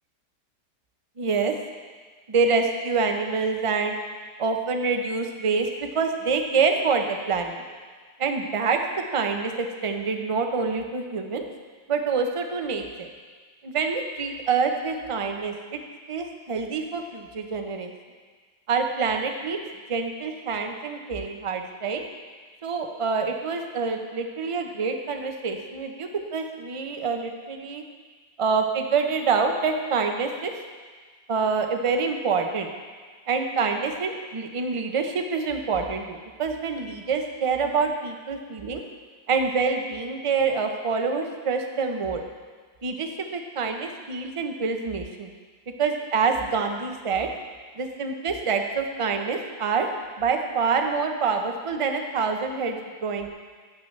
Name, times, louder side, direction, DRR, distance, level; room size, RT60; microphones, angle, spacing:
voice 1, 1.2-1.5 2.3-4.0 4.4-7.6 8.2-8.8 9.1-11.4 11.9-13.1 13.6-15.8 16.1-17.9 18.7-19.6 19.9-22.0 22.6-27.8 28.4-30.5 31.3-32.7 33.3-38.8 39.3-42.2 42.8-45.3 45.8-47.3 47.8-49.9 50.2-53.3, right 5 dB, 50° right, 4 dB, 0.3 m, -26 dB
16.0 x 7.3 x 3.2 m, 1.5 s
omnidirectional pair, 1.7 m